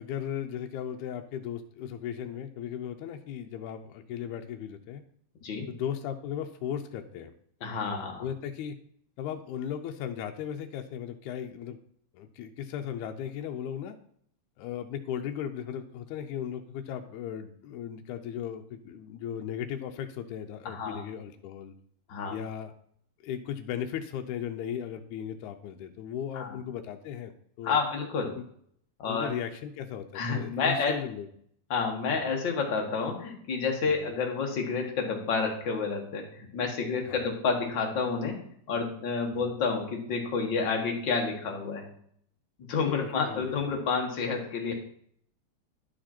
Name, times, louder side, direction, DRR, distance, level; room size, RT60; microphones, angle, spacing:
voice 1, 0.0-5.0 5.7-7.3 8.2-8.8 9.2-11.8 12.1-14.0 14.6-21.7 22.3-22.7 23.2-27.8 28.3-28.4 29.1-31.3 32.1-32.3 34.0-34.1 37.1-37.2 39.4-39.5 42.8-43.8, left 9 dB, 80° left, 5 dB, 2.0 m, -36 dB
voice 2, 7.6-8.2 20.6-21.0 22.1-22.4 26.3-26.5 27.6-28.4 29.0-29.3 30.1-30.9 31.7-41.9 42.7-44.7, left 5 dB, 50° left, 1 dB, 1.6 m, -29 dB
11.0 x 5.1 x 4.3 m, 0.64 s
omnidirectional pair, 3.5 m